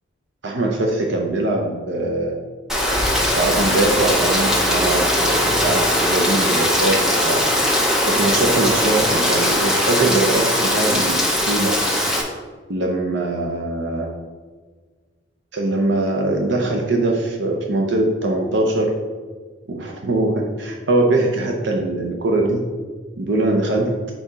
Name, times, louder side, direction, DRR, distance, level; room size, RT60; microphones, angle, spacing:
voice 1, 0.4-2.3 3.1-7.5 8.1-11.2 11.5-11.8 12.7-14.1 15.5-18.9 19.7-22.6 23.2-23.9, right 2 dB, 65° right, 0 dB, 0.7 m, -22 dB
Rain, 2.7-12.2, equal, 5° right, 0.7 m, -19 dB
4.4 x 4.3 x 5.0 m, 1.4 s
head